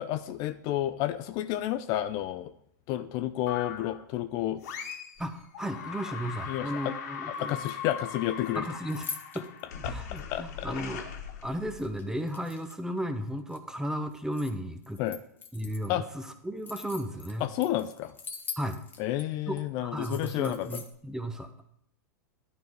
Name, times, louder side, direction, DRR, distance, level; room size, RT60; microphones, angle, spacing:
voice 1, 0.0-2.5 2.9-4.6 6.5-6.9 7.4-8.7 9.8-10.7 15.0-15.2 15.9-16.0 17.4-18.1 19.0-20.8, left 13 dB, 45° left, 10 dB, 0.5 m, -31 dB
sound 1, 3.5-4.0 4.6-5.2 5.5-12.0, left 7 dB, 60° left, 1.5 m, -40 dB
sound 2, 4.8-5.4 7.3-8.2 8.4-9.6 10.2-10.3 11.7-12.9 13.3-14.5 14.8-15.9 16.3-19.2 19.6-19.7 20.0-20.9, left 5 dB, 20° left, 1.1 m, -44 dB
voice 2, 5.2-7.6 8.6-9.1 9.3-9.5 9.9-11.0 11.4-15.0 15.5-17.5 18.6-18.8 19.5-19.6 19.8-21.7, equal, 5° right, 8 dB, 0.9 m, -34 dB
11.5 x 4.7 x 5.3 m, 0.74 s
hypercardioid pair, 100°, 10 cm